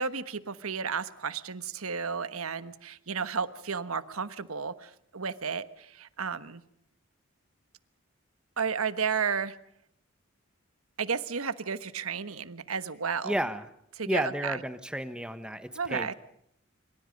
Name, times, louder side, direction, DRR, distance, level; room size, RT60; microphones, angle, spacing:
voice 1, 0.0-6.6 8.6-9.6 11.0-13.4 14.0-14.6 15.7-16.1, right 6 dB, 80° right, 13 dB, 1.3 m, -33 dB
voice 2, 13.2-13.6 14.1-16.1, equal, 5° right, 10 dB, 1.2 m, -32 dB
26.5 x 25.0 x 5.3 m, 0.71 s
head